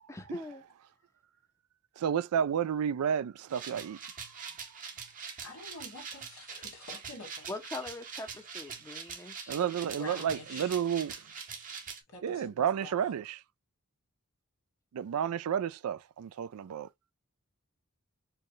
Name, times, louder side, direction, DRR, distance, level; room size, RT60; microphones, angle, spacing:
voice 1, 0.1-0.6 7.5-9.6, left 2 dB, 15° left, 0.5 m, -42 dB
voice 2, 2.0-4.1 9.5-11.2 12.2-13.4 14.9-16.9, right 8 dB, 90° right, 0.3 m, -31 dB
sound 1, 3.5-12.0, right 6 dB, 35° right, 0.7 m, -44 dB
voice 3, 5.4-7.5 9.9-10.8 11.0-11.1 12.1-13.2, left 3 dB, 80° left, 1.7 m, -48 dB
4.6 x 2.1 x 3.0 m
head